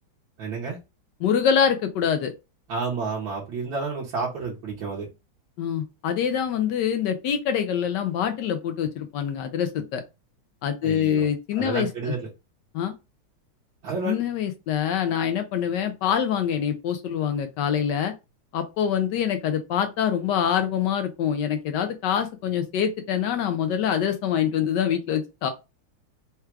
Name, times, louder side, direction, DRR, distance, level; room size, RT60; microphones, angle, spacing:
voice 1, 0.4-0.8 2.7-5.1 10.8-11.3 11.6-12.3 13.8-14.2, right 4 dB, 65° right, 1.8 m, -30 dB
voice 2, 1.2-2.3 5.6-10.0 10.6-12.1 12.7-13.0 14.0-18.1 18.5-25.5, left 8 dB, 75° left, 1.0 m, -25 dB
4.5 x 2.3 x 4.5 m
omnidirectional pair, 2.4 m